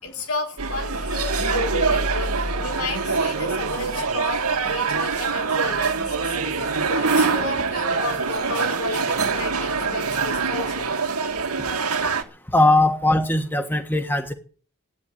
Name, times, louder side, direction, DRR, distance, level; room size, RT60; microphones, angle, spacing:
voice 1, 0.0-2.3 2.6-10.9, left 2 dB, 80° left, 4.6 m, -32 dB
sound 1, 0.6-12.2, right 4 dB, 90° right, 2.1 m, -24 dB
voice 2, 12.5-14.3, left 2 dB, 10° left, 1.4 m, -19 dB
12.5 x 9.6 x 9.1 m
head